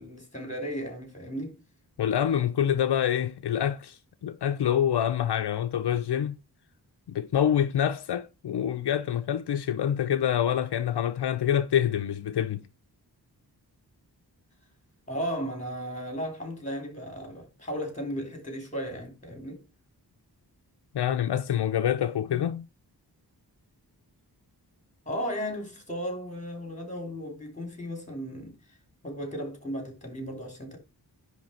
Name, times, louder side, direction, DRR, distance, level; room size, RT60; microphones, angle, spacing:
voice 1, 0.0-1.6 15.1-19.6 25.0-28.6 29.0-30.8, equal, 20° left, 3.3 m, -35 dB
voice 2, 2.0-6.3 7.1-12.6 20.9-22.7, left 9 dB, 75° left, 0.6 m, -26 dB
10.0 x 3.4 x 5.7 m
wide cardioid pair, 135°, 40 cm